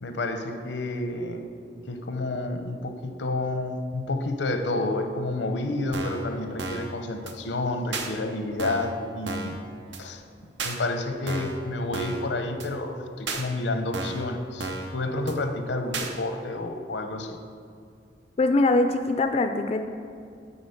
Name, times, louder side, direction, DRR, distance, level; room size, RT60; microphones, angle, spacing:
voice 1, 0.0-1.5 1.9-9.6 10.0-10.2 10.6-17.4, left 2 dB, 90° left, 6 dB, 0.7 m, -30 dB
sound 1, 5.9-6.3 6.6-6.9 7.3-7.4 7.9-8.1 8.6-8.9 9.3-9.6 9.9-10.0 10.6-10.8 11.3-11.6 11.9-12.3 12.6-12.7 13.3-13.4 13.9-14.3 14.6-14.9 15.3-15.4 15.9-16.1, right 3 dB, 85° right, 0.7 m, -32 dB
voice 2, 18.4-19.8, left 2 dB, 35° left, 7 dB, 0.3 m, -22 dB
8.7 x 4.1 x 5.8 m, 2.3 s
head